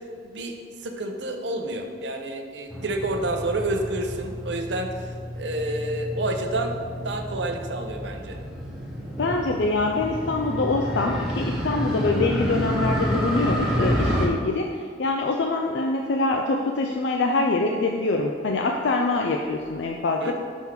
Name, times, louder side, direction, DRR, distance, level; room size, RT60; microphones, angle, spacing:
voice 1, 0.2-6.8 7.0-8.4 20.2-20.3, right 2 dB, 75° right, 4 dB, 0.6 m, -29 dB
Motorcycle, 2.7-14.3, equal, ahead, 0.9 m, -29 dB
voice 2, 9.2-20.3, left 3 dB, 75° left, 2 dB, 0.4 m, -24 dB
6.1 x 3.6 x 5.8 m, 2.1 s
head